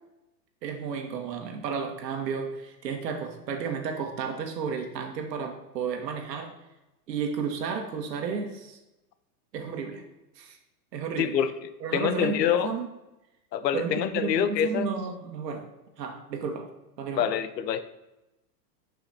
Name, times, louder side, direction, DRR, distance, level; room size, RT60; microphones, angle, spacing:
voice 1, 0.6-6.5 7.1-8.8 9.5-10.0 10.4-10.6 10.9-11.3 11.8-12.9 13.7-15.7 16.0-16.7 17.0-17.3, right 6 dB, 75° right, 4 dB, 2.0 m, -32 dB
voice 2, 11.2-12.7 13.5-14.9 17.1-17.8, left 9 dB, 75° left, 12 dB, 0.9 m, -26 dB
11.5 x 5.7 x 4.3 m, 0.97 s
supercardioid pair, 165°, 50 cm